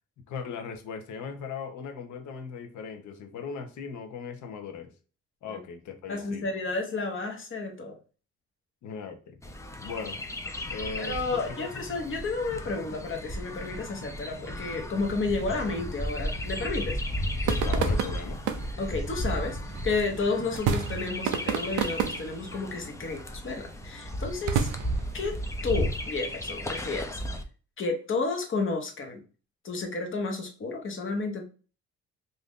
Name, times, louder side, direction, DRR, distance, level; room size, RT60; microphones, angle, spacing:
voice 1, 0.3-4.9 5.4-6.5 8.8-9.4 9.8-10.2 10.7-11.7 17.4-18.4, left 5 dB, 75° left, 6 dB, 0.8 m, -38 dB
voice 2, 6.1-8.0 11.0-17.0 18.8-19.6 19.8-24.7 25.1-25.4 25.6-27.2 27.8-29.2 29.6-31.4, left 3 dB, 40° left, 3 dB, 1.0 m, -31 dB
Chirp tweet, 9.4-27.4, equal, 10° left, 0.4 m, -34 dB
sound 1, 10.6-20.6, equal, 5° right, 0.8 m, -48 dB
sound 2, 17.1-27.4, right 7 dB, 85° right, 0.5 m, -33 dB
2.6 x 2.6 x 3.5 m, 0.36 s
cardioid pair, 90°, 30 cm